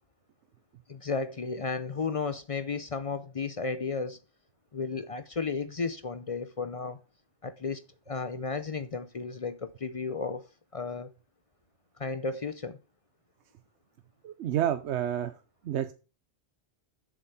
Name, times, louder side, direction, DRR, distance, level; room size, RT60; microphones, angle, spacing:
voice 1, 0.9-4.2 4.7-7.0 7.4-7.8 8.1-10.5 10.7-11.1 12.0-12.8, left 4 dB, 40° left, 0.5 m, -33 dB
voice 2, 14.2-15.3 15.6-15.9, right 11 dB, 90° right, 0.9 m, -29 dB
7.1 x 6.9 x 5.4 m
omnidirectional pair, 1.1 m